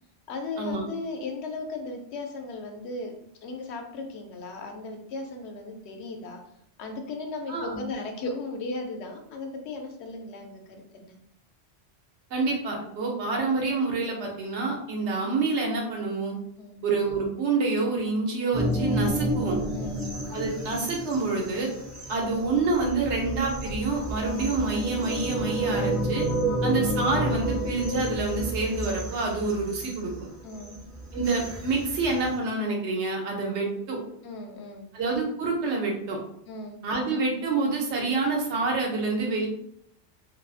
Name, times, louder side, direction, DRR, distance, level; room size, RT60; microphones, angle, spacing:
voice 1, 0.3-6.4 6.8-11.2 16.6-16.8 19.7-20.1 26.5-26.7 30.4-30.8 34.2-34.9 36.5-36.8, left 3 dB, 75° left, 4 dB, 0.8 m, -36 dB
voice 2, 7.5-7.8 12.3-16.3 16.8-19.6 20.3-21.7 22.1-26.3 26.6-30.1 31.1-34.0 34.9-36.2 36.8-39.5, right 3 dB, 85° right, 0 dB, 1.0 m, -27 dB
sound 1, 18.5-32.4, right 1 dB, 30° right, 0.3 m, -30 dB
2.6 x 2.3 x 2.5 m, 0.70 s
omnidirectional pair, 1.1 m